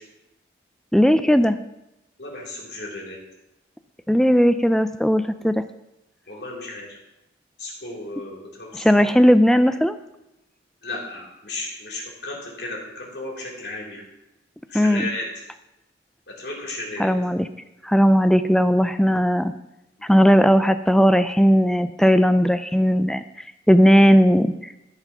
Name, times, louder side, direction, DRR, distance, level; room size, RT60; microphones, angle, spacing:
voice 1, 0.9-1.6 4.1-5.6 8.7-10.0 14.7-15.0 17.0-17.5 17.8-19.5 20.1-23.2 23.7-24.7, equal, 5° left, 11 dB, 0.3 m, -17 dB
voice 2, 2.2-3.2 6.3-7.0 7.6-9.1 10.8-14.0 14.7-15.4 16.3-17.1, left 2 dB, 65° left, -2 dB, 3.6 m, -34 dB
14.0 x 5.7 x 6.0 m, 0.92 s
head